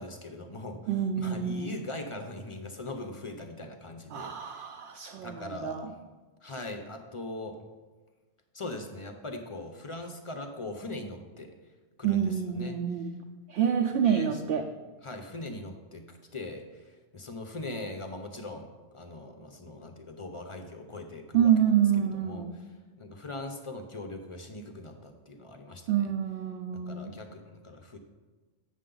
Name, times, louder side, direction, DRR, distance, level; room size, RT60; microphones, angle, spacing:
voice 1, 0.0-0.8 1.2-4.7 5.2-5.9 6.4-7.6 8.5-11.5 12.0-12.8 14.0-14.4 15.0-21.5 21.9-22.5 23.0-26.1 26.7-28.0, left 2 dB, 40° left, 5 dB, 0.5 m, -41 dB
voice 2, 0.9-1.8 4.1-5.9 12.0-13.1 13.5-14.6 21.3-22.5 25.9-27.1, right 9 dB, 65° right, 4 dB, 0.8 m, -27 dB
8.3 x 6.7 x 3.8 m, 1.3 s
omnidirectional pair, 1.3 m